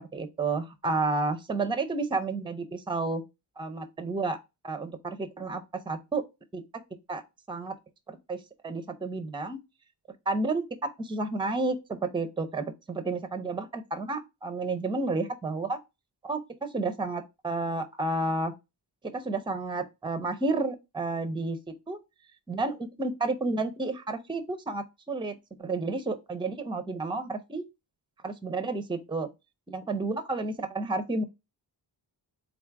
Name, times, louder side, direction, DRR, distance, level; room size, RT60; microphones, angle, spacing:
voice 1, 0.1-3.2 3.6-4.4 4.6-6.2 6.5-6.6 7.1-7.2 7.5-7.8 8.1-9.6 10.3-15.8 16.2-18.5 19.1-21.6 21.9-22.0 22.5-27.7 28.2-29.3 29.7-31.2, right 3 dB, 10° right, 0.5 m, -31 dB
3.9 x 2.4 x 4.5 m
wide cardioid pair, 140°, 44 cm